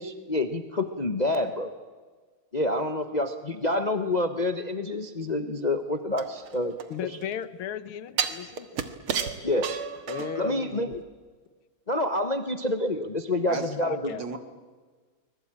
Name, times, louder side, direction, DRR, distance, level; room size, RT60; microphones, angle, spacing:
voice 1, 0.0-1.7 2.5-6.7 7.0-7.1 9.4-9.7 10.4-10.9 11.9-14.1, left 1 dB, 30° left, 8 dB, 0.9 m, -27 dB
sound 1, 6.2-7.3 8.2-10.5 10.9-11.0, right 7 dB, 80° right, 2.4 m, -32 dB
voice 2, 6.9-8.7 10.1-11.0 13.8-14.2, left 9 dB, 80° left, 14 dB, 1.9 m, -36 dB
voice 3, 8.4-8.9 13.5-13.8 14.1-14.4, right 3 dB, 60° right, 8 dB, 2.6 m, -37 dB
24.5 x 21.5 x 8.9 m, 1.5 s
omnidirectional pair, 2.3 m